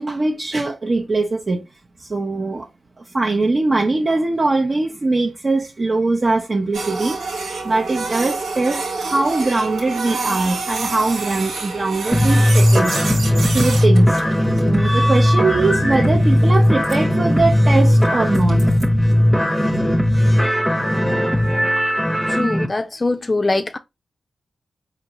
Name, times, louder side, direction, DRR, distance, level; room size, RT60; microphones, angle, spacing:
voice 1, 0.0-1.6 2.0-2.7 3.1-7.2 7.6-13.0 13.5-14.2 14.6-18.6, right 3 dB, 45° right, 0.7 m, -21 dB
Printer, 6.7-18.8, right 3 dB, 90° right, 1.2 m, -29 dB
sound 1, 12.1-22.7, equal, 5° left, 0.7 m, -17 dB
voice 2, 22.3-23.8, left 2 dB, 40° left, 0.3 m, -22 dB
4.3 x 2.5 x 2.9 m
cardioid pair, 45°, 0 cm